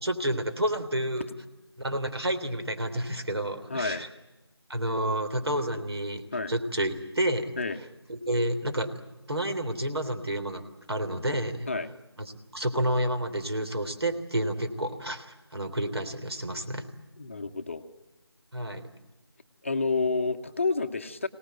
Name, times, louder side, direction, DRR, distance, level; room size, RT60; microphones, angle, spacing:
voice 1, 0.0-1.3 1.8-4.1 4.7-6.2 6.5-7.5 8.1-8.9 9.3-11.7 12.2-12.3 12.5-16.9 18.5-18.8, right 1 dB, 70° right, 8 dB, 3.5 m, -30 dB
voice 2, 3.7-4.0 6.3-6.5 7.6-7.8 11.7-11.9 17.2-17.8 19.6-21.3, left 3 dB, 30° left, 7 dB, 0.9 m, -29 dB
24.0 x 18.5 x 9.3 m, 1.1 s
figure-of-eight pair, 165°, 14 cm